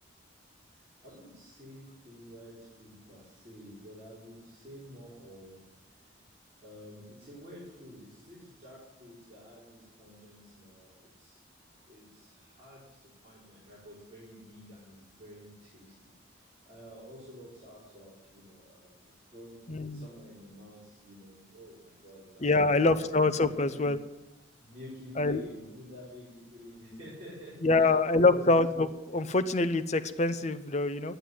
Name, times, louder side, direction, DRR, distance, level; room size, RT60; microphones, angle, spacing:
voice 1, 0.7-5.6 5.9-6.0 6.6-11.4 11.9-19.0 19.3-19.6 19.9-23.0 23.4-23.7 24.6-28.5, equal, 30° right, -8 dB, 4.6 m, -49 dB
voice 2, 19.7-20.1 22.4-24.0 25.2-25.4 27.6-31.2, left 3 dB, 35° left, 9 dB, 0.7 m, -25 dB
10.0 x 9.3 x 9.6 m, 0.99 s
head